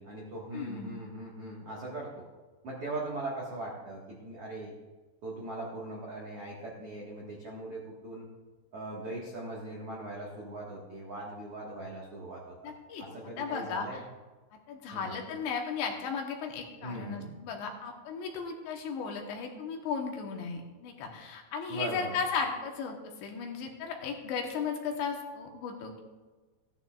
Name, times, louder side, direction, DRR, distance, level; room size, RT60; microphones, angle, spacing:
voice 1, 0.0-2.3 2.6-4.7 5.2-8.3 8.7-12.7 13.0-14.0 14.9-15.2 16.8-17.3 21.7-22.1, right 2 dB, 65° right, -4 dB, 1.4 m, -40 dB
voice 2, 0.5-0.9 12.6-13.0 13.4-14.0 14.7-23.0 23.2-26.0, left 5 dB, 75° left, 2 dB, 3.2 m, -35 dB
16.0 x 11.0 x 2.4 m, 1.3 s
omnidirectional pair, 5.4 m